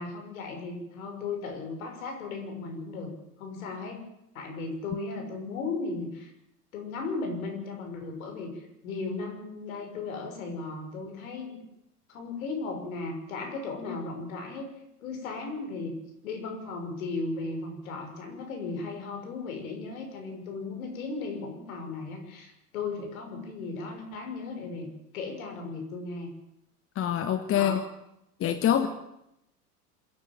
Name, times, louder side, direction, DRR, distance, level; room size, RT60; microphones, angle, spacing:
voice 1, 0.0-3.1 3.4-4.0 4.3-6.3 6.7-11.6 12.1-14.7 15.0-15.9 16.2-24.9 25.1-26.3 27.5-27.8, left 3 dB, 60° left, 3 dB, 6.3 m, -36 dB
voice 2, 26.9-27.8 28.4-28.9, left 10 dB, 30° left, 9 dB, 1.4 m, -25 dB
27.0 x 11.0 x 9.3 m, 0.83 s
figure-of-eight pair, 85°, 46 cm